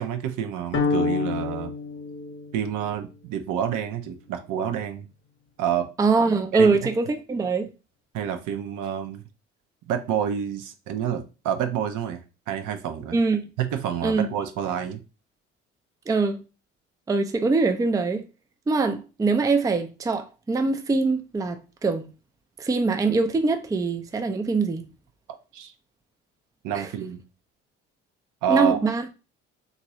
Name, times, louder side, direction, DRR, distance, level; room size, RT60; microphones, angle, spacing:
voice 1, 0.0-1.7 2.5-5.1 5.6-5.9 6.5-6.9 8.1-9.2 9.9-12.2 12.5-13.2 13.6-15.0 25.5-25.7 26.6-27.2 28.4-28.8, right 9 dB, 65° right, 0.7 m, -28 dB
sound 1, 0.7-3.0, left 4 dB, 35° left, 0.9 m, -28 dB
voice 2, 6.0-7.7 13.1-13.4 14.0-14.3 16.1-16.4 17.1-18.3 18.7-22.1 22.6-24.8 26.7-26.9 28.5-29.1, right 4 dB, 10° right, 0.4 m, -23 dB
2.9 x 2.6 x 2.8 m
hypercardioid pair, 60°, 33 cm